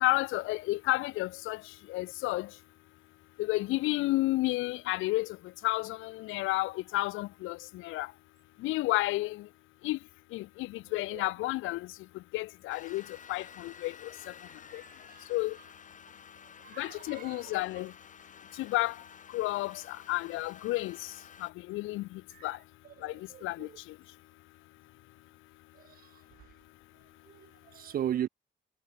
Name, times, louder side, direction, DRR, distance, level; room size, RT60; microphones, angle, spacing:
voice 1, 0.0-1.6 1.9-2.5 3.4-5.3 5.6-7.6 7.8-8.1 8.6-9.4 9.8-10.0 10.3-11.9 12.3-13.0 13.3-13.9 14.7-14.8 15.3-15.6 16.8-17.9 18.6-18.9 19.3-21.0 21.4-22.1 22.4-22.6 23.0-23.1 23.4-23.7, left 19 dB, 85° left, 0.4 m, -31 dB
sound 1, 12.7-21.5, left 7 dB, 40° left, 1.0 m, -52 dB
voice 2, 14.7-15.3 16.6-17.6 22.3-22.5 23.0-23.8 27.3-28.3, right 10 dB, 45° right, 0.4 m, -38 dB
cardioid pair, 90°, 20 cm